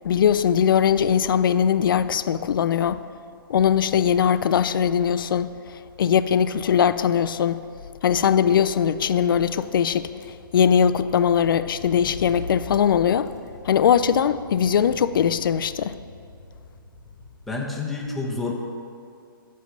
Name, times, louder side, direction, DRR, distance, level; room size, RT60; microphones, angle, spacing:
voice 1, 0.0-3.0 3.5-7.6 8.0-13.3 13.6-16.0, left 8 dB, 65° left, 13 dB, 0.4 m, -21 dB
Car / Engine, 9.4-17.8, left 3 dB, 50° left, 1.1 m, -43 dB
voice 2, 17.5-18.5, left 3 dB, ahead, -2 dB, 0.8 m, -28 dB
9.4 x 3.4 x 6.4 m, 2.3 s
hypercardioid pair, 135°, 12 cm